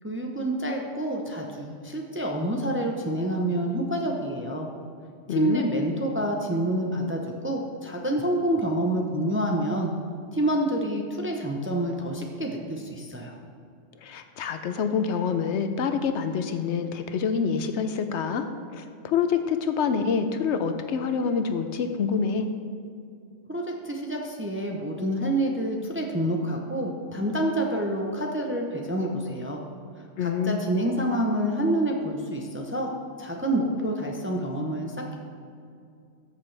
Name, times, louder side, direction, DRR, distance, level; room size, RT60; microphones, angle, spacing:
voice 1, 0.0-4.7 5.3-9.9 10.3-13.3 23.5-29.6 30.2-35.2, right 1 dB, 15° right, 1 dB, 0.6 m, -28 dB
voice 2, 5.3-5.7 14.0-18.5 18.7-22.5 30.2-30.6, left 6 dB, 70° left, 8 dB, 0.8 m, -26 dB
13.0 x 6.6 x 3.3 m, 2.4 s
omnidirectional pair, 1.3 m